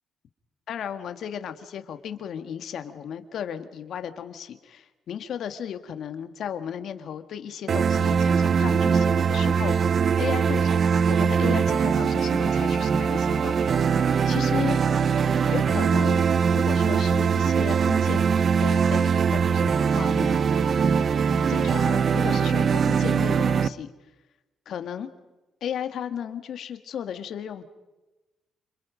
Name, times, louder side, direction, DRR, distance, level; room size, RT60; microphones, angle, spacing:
voice 1, 0.7-13.6 14.3-14.8 15.5-16.2 16.5-20.5 21.5-23.9 24.7-25.1 25.6-27.6, left 8 dB, 70° left, 8 dB, 2.0 m, -35 dB
sound 1, 7.7-23.7, right 6 dB, 50° right, 0.8 m, -22 dB
29.0 x 27.0 x 5.3 m, 1.1 s
cardioid pair, 90°, 0 cm